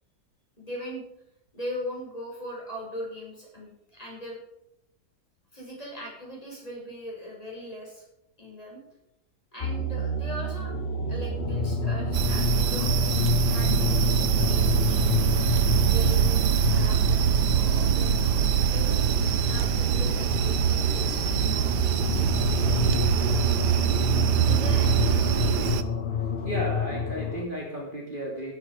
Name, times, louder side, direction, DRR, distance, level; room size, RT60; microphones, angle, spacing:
voice 1, 0.6-1.1 1.5-4.4 5.5-8.0 8.4-8.8 9.5-10.8 11.1-15.0 15.9-19.0 19.5-22.7 24.4-25.8, equal, 20° left, -3 dB, 6.3 m, -40 dB
sound 1, 9.6-27.5, left 4 dB, 40° left, 1.2 m, -29 dB
sound 2, 12.1-25.8, right 10 dB, 80° right, 1.4 m, -24 dB
voice 2, 26.1-28.5, equal, 30° right, -2 dB, 3.0 m, -34 dB
15.5 x 12.5 x 5.0 m, 0.78 s
omnidirectional pair, 1.8 m